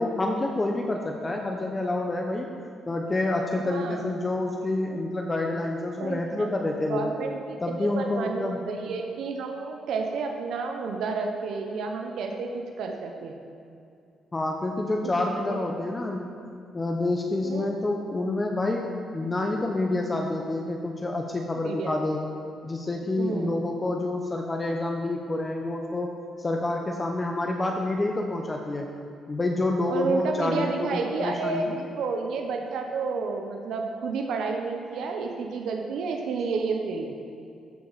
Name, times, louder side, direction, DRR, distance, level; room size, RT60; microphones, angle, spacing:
voice 1, 0.0-2.5 2.9-7.1 7.6-8.6 14.3-16.3 16.7-22.2 22.6-26.1 26.4-28.9 29.3-31.8, left 2 dB, 25° left, 2 dB, 0.7 m, -28 dB
voice 2, 3.6-4.0 6.0-13.4 15.0-15.7 17.4-17.7 21.6-21.9 23.2-23.6 29.9-37.2, right 4 dB, 75° right, 3 dB, 0.8 m, -31 dB
14.0 x 4.9 x 4.1 m, 2.5 s
cardioid pair, 90°, 0 cm